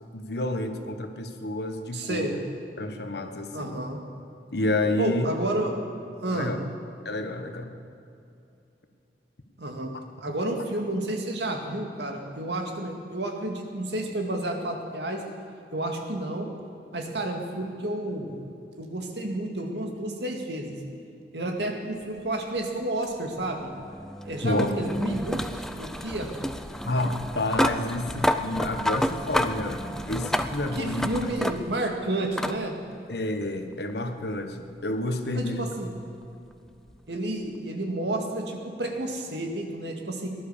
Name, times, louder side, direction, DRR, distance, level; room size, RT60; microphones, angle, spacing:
voice 1, 0.1-2.4 2.8-3.8 4.5-5.3 6.3-6.6 7.0-7.7 24.4-24.7 26.8-31.3 33.1-35.7, left 1 dB, 65° left, 6 dB, 1.3 m, -29 dB
voice 2, 1.9-2.4 3.5-4.0 5.0-5.7 6.2-6.5 9.6-9.9 10.2-15.2 15.7-16.5 16.9-18.3 18.8-20.8 21.3-23.7 24.2-26.3 30.8-32.7 35.3-35.9 37.1-40.3, right 1 dB, 70° right, 3 dB, 2.2 m, -31 dB
sound 1, 23.0-31.9 32.4-32.6 33.9-34.0 36.9-37.0, equal, 5° left, 0.5 m, -30 dB
18.5 x 11.0 x 7.1 m, 2.7 s
head